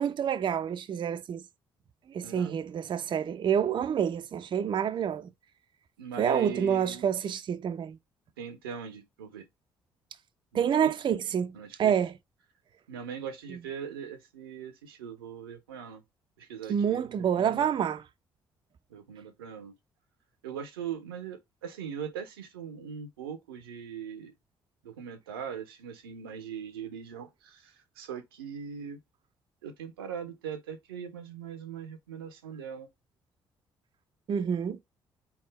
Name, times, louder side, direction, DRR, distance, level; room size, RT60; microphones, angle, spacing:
voice 1, 0.0-1.4 2.1-5.3 6.2-8.0 10.5-11.5 11.8-12.1 16.7-18.0 34.3-34.8, right 8 dB, 40° right, 0.5 m, -28 dB
voice 2, 2.2-2.5 6.0-7.1 8.4-9.4 10.5-10.9 11.5-11.9 12.9-16.0 16.4-17.1 17.3-17.7 18.9-19.7 20.4-24.3 24.8-29.0 29.6-32.9, right 7 dB, 75° right, 0.7 m, -40 dB
4.3 x 3.5 x 3.0 m
figure-of-eight pair, 45°, 12 cm